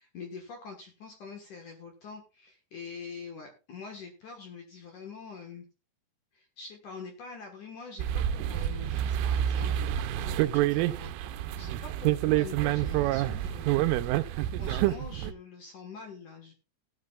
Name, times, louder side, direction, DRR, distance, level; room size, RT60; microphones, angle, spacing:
voice 1, 0.0-5.6 6.3-13.9 14.2-16.5, left 5 dB, 65° left, 3 dB, 2.0 m, -45 dB
sound 1, 8.0-15.3, right 13 dB, 85° right, 3.2 m, -28 dB
17.5 x 10.5 x 2.4 m, 0.31 s
omnidirectional pair, 5.7 m